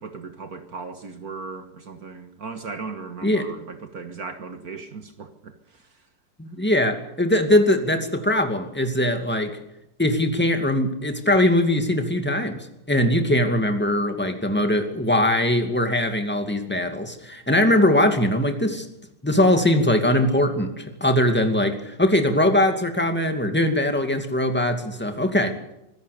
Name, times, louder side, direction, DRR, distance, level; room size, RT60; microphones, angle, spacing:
voice 1, 0.0-6.0, right 4 dB, 55° right, 1.9 m, -37 dB
voice 2, 6.4-9.6 10.0-12.6 12.9-18.9 19.2-25.6, left 1 dB, 5° left, 2.3 m, -21 dB
25.0 x 16.0 x 6.8 m
omnidirectional pair, 2.0 m